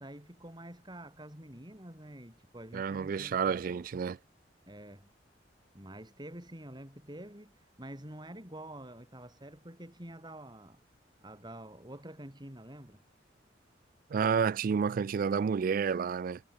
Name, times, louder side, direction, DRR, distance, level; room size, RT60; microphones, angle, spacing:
voice 1, 0.0-3.8 4.7-5.1 5.7-10.8 11.2-13.0, right 1 dB, 25° right, 5.2 m, -48 dB
voice 2, 2.7-4.2 14.1-16.4, right 6 dB, 50° right, 0.3 m, -30 dB
head